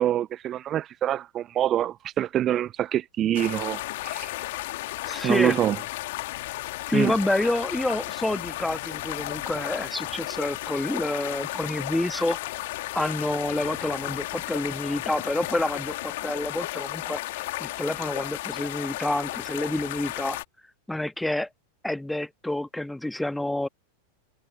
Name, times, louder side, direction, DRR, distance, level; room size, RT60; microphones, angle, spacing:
voice 1, 0.0-4.3 5.2-5.8 6.9-7.1, right 11 dB, 30° right, 0.5 m, -25 dB
sound 1, 3.3-20.4, left 18 dB, 50° left, 2.7 m, -34 dB
voice 2, 5.0-5.6 6.9-12.7 12.9-20.4 20.9-21.5 21.8-23.7, left 1 dB, 5° left, 1.4 m, -28 dB
figure-of-eight pair, 90°, 0 cm